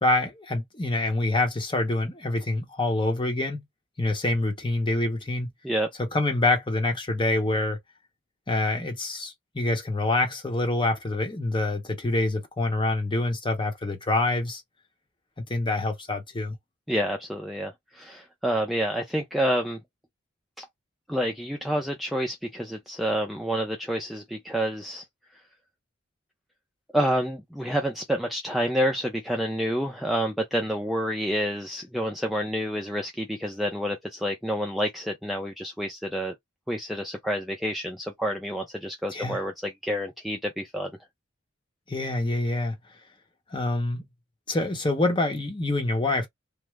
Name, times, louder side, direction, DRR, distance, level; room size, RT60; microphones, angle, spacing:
voice 1, 0.0-3.6 4.0-5.5 6.0-7.8 8.5-14.6 15.4-16.5 39.1-39.4 41.9-42.7 43.5-44.1 44.5-46.3, left 2 dB, 25° left, 0.8 m, -26 dB
voice 2, 16.9-19.8 20.6-20.7 21.1-25.0 26.9-36.3 36.7-40.9, equal, ahead, 0.4 m, -28 dB
3.1 x 2.0 x 3.4 m
head